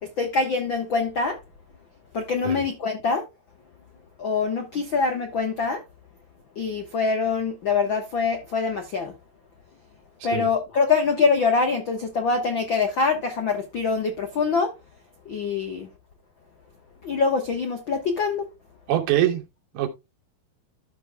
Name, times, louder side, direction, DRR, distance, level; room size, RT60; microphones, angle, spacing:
voice 1, 0.0-1.4 2.1-3.2 4.2-5.8 6.5-9.1 10.2-14.7 15.2-15.9 17.0-18.5, left 4 dB, 85° left, 1.0 m, -24 dB
voice 2, 18.9-19.4 19.7-19.9, right 12 dB, 85° right, 3.4 m, -23 dB
13.5 x 6.4 x 2.3 m
omnidirectional pair, 4.3 m